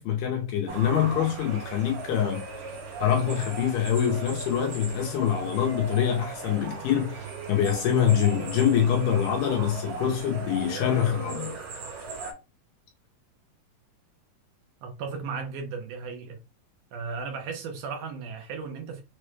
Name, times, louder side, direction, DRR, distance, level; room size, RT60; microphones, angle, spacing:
voice 1, 0.0-2.4 3.0-11.6, left 9 dB, 75° left, 2.2 m, -25 dB
sound 1, 0.7-12.3, right 4 dB, 60° right, 2.1 m, -38 dB
voice 2, 14.8-16.4 16.9-19.0, right 5 dB, 75° right, 1.9 m, -35 dB
6.1 x 2.1 x 3.1 m
omnidirectional pair, 4.4 m